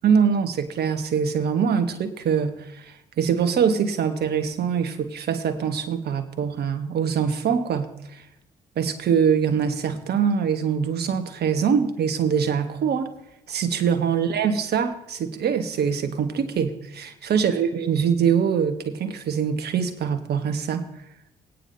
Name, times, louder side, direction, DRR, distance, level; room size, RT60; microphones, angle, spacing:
voice 1, 0.0-8.2 8.8-13.1 13.5-20.9, right 7 dB, 55° right, 8 dB, 1.3 m, -23 dB
19.0 x 9.2 x 2.7 m, 0.85 s
hypercardioid pair, 50°, 19 cm